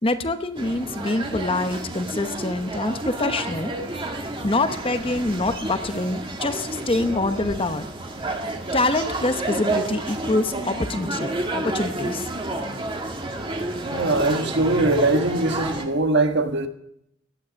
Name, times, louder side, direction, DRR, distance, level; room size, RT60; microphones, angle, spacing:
voice 1, 0.0-3.7 4.4-7.9 8.7-12.3, left 2 dB, 25° left, 1.0 m, -25 dB
sound 1, 0.6-15.8, right 2 dB, 25° right, 1.9 m, -30 dB
voice 2, 13.9-16.7, right 2 dB, 55° right, 1.5 m, -21 dB
17.0 x 11.5 x 6.3 m
head